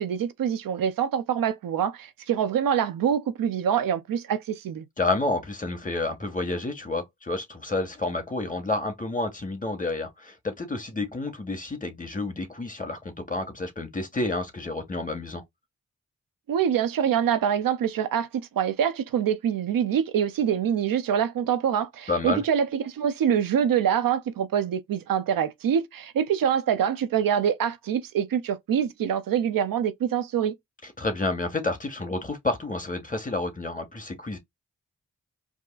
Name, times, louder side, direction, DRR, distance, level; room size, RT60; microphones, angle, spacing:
voice 1, 0.0-4.8 16.5-18.3 18.6-30.5, right 8 dB, 85° right, 0.6 m, -25 dB
voice 2, 5.0-15.4 22.1-22.4 31.0-34.4, left 2 dB, 25° left, 1.7 m, -29 dB
4.6 x 2.8 x 2.4 m
cardioid pair, 45°, 33 cm